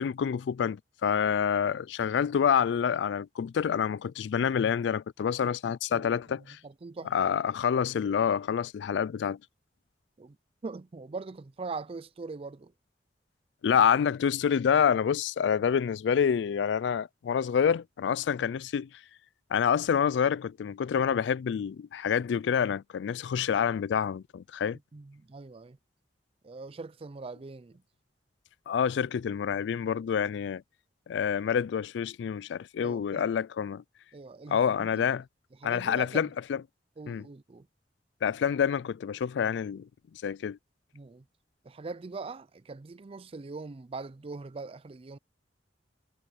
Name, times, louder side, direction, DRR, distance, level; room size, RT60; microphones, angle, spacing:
voice 1, 0.0-6.6 7.1-9.4 13.6-18.9 19.5-24.8 28.7-30.6 31.1-33.8 34.5-35.2 35.6-36.6 37.1-37.2 38.2-39.9 40.2-40.6, left 7 dB, 80° left, 0.3 m, -27 dB
voice 2, 5.9-7.1 10.2-10.4 10.6-12.7 24.9-25.8 26.4-27.8 32.8-33.2 34.1-35.1 35.6-36.3 37.0-37.7 40.9-41.2 41.6-45.2, right 3 dB, 35° right, 0.4 m, -42 dB
head